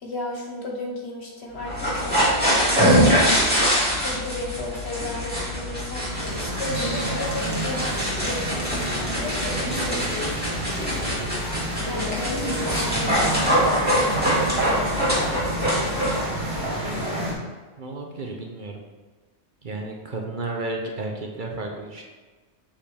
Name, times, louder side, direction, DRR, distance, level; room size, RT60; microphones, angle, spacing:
voice 1, 0.0-6.0 6.4-10.7 11.8-15.3, left 2 dB, 65° left, -1 dB, 1.5 m, -35 dB
sound 1, 1.6-16.2, equal, 10° right, 2.0 m, -24 dB
Mall Ambiance High heels, 6.1-17.3, right 1 dB, 30° right, 1.7 m, -29 dB
voice 2, 17.8-18.8 19.6-22.0, right 2 dB, 45° right, 0 dB, 0.9 m, -32 dB
6.8 x 5.5 x 3.4 m, 1.3 s
omnidirectional pair, 1.2 m